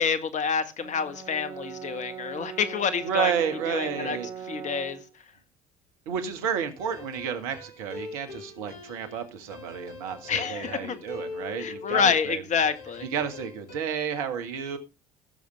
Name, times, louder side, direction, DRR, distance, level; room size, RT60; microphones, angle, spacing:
voice 1, 0.0-3.3 3.7-4.2 4.5-5.0 10.3-11.0 11.6-13.1, left 6 dB, 40° left, 1.6 m, -27 dB
Brass instrument, 0.8-5.1, right 8 dB, 25° right, 3.6 m, -40 dB
voice 2, 3.0-4.3 6.0-12.4 13.0-14.8, right 7 dB, 65° right, 1.8 m, -31 dB
sound 1, 6.8-12.3 12.6-13.8, left 3 dB, 55° left, 5.2 m, -42 dB
17.0 x 7.2 x 3.5 m
figure-of-eight pair, 55°, 19 cm